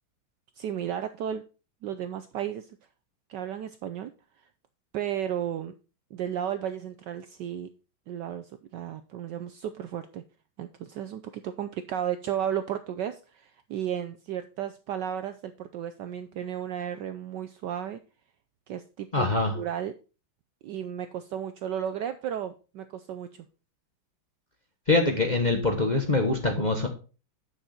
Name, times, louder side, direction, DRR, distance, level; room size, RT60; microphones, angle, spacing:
voice 1, 0.6-1.4 1.8-2.8 3.3-4.1 4.9-5.7 6.1-7.7 8.1-10.2 10.6-18.0 18.7-19.3 19.5-19.9 20.6-23.5, right 9 dB, 75° right, 10 dB, 1.0 m, -34 dB
voice 2, 19.1-19.5 24.9-26.9, left 2 dB, 30° left, 2 dB, 1.0 m, -24 dB
9.3 x 6.3 x 4.2 m, 0.34 s
omnidirectional pair, 2.3 m